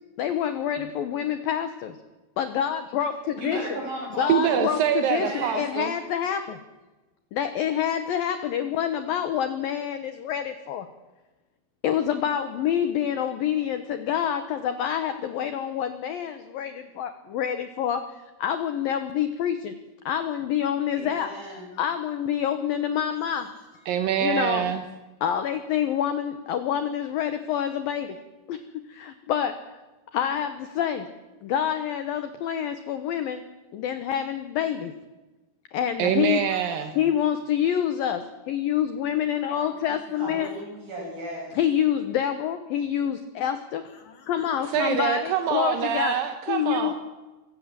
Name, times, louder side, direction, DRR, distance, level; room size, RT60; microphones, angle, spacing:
voice 1, 0.2-2.0 2.4-3.6 4.2-6.6 7.3-10.9 11.8-19.8 20.1-21.3 21.8-23.9 24.2-24.7 25.2-28.2 28.5-29.8 30.1-31.1 31.4-33.4 33.7-34.9 35.7-36.6 37.0-40.5 41.5-46.1 46.5-46.9, left 9 dB, 80° left, 9 dB, 2.0 m, -27 dB
voice 2, 3.4-4.6 5.0-5.6 20.9-21.7 40.2-41.6, right 1 dB, 45° right, -2 dB, 9.5 m, -35 dB
voice 3, 4.3-5.9 23.9-24.8 36.0-36.9 44.7-46.9, right 9 dB, 70° right, 7 dB, 2.2 m, -25 dB
26.0 x 16.0 x 7.6 m, 1.1 s
omnidirectional pair, 5.7 m